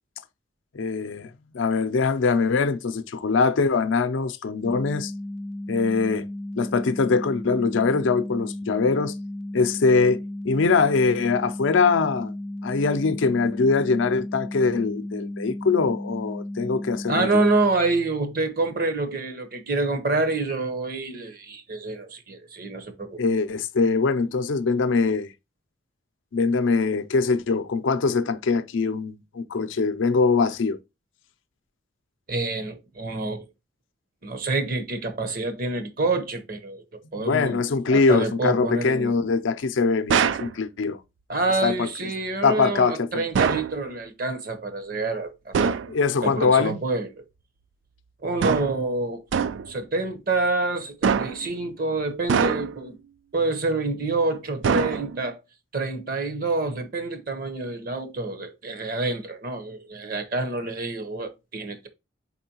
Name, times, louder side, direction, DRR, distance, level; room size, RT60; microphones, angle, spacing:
voice 1, 0.7-1.3 1.5-5.1 5.7-6.3 6.6-9.1 9.5-12.4 12.6-17.4 23.2-25.3 26.3-30.8 37.2-41.0 41.6-41.9 42.4-43.2 45.9-46.8, left 4 dB, 85° left, 0.5 m, -22 dB
sound 1, 4.6-17.4, left 1 dB, 5° left, 0.4 m, -34 dB
voice 2, 17.1-23.2 32.3-33.5 34.2-39.1 41.3-45.9 46.2-47.2 48.2-49.3 49.7-53.0 53.3-55.4 55.7-61.9, right 3 dB, 50° right, 0.9 m, -27 dB
sound 2, 40.1-40.5 43.3-43.8 45.5-45.9 48.4-48.8 49.3-49.7 51.0-51.5 52.3-52.9 54.6-55.3, right 6 dB, 80° right, 0.3 m, -23 dB
4.5 x 4.1 x 2.8 m
head